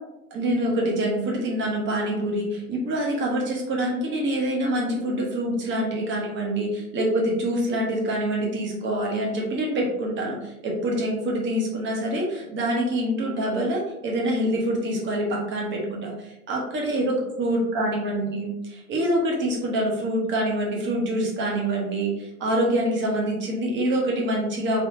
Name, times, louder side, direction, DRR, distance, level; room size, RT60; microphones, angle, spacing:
voice 1, 0.3-24.8, right 1 dB, 25° right, -2 dB, 1.0 m, -25 dB
3.5 x 2.6 x 2.5 m, 0.89 s
hypercardioid pair, 105°, 44 cm